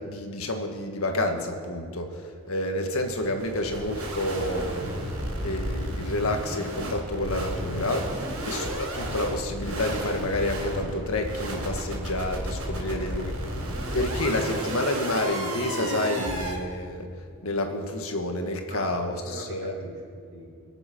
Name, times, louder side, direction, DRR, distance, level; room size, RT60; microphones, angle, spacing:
voice 1, 0.0-5.0 5.4-8.1 8.4-13.3 13.9-17.1 17.4-19.7, left 1 dB, 80° left, 4 dB, 1.7 m, -29 dB
sound 1, 2.9-16.6, right 1 dB, 85° right, 4.3 m, -33 dB
voice 2, 18.7-20.6, right 1 dB, 35° right, -8 dB, 3.6 m, -42 dB
23.5 x 8.0 x 6.0 m, 2.3 s
head